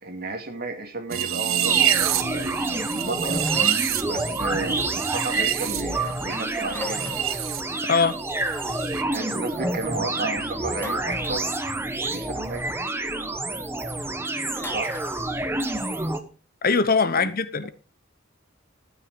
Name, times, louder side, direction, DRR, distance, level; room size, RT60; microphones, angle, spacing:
voice 1, 0.0-2.5 2.9-3.4 4.0-7.1 9.1-11.5 12.0-12.6 14.7-14.9 17.2-17.3, right 2 dB, 50° right, 2.6 m, -33 dB
sound 1, 1.1-7.6 7.9-9.0, right 11 dB, 80° right, 1.0 m, -27 dB
sound 2, 1.6-16.2, right 2 dB, 10° right, 1.2 m, -28 dB
sound 3, 3.5-4.0 6.7-7.5 10.8-11.5 14.6-15.1, left 3 dB, 10° left, 1.9 m, -38 dB
voice 2, 7.8-8.2 16.6-17.7, left 5 dB, 45° left, 0.9 m, -21 dB
12.5 x 9.3 x 5.1 m
head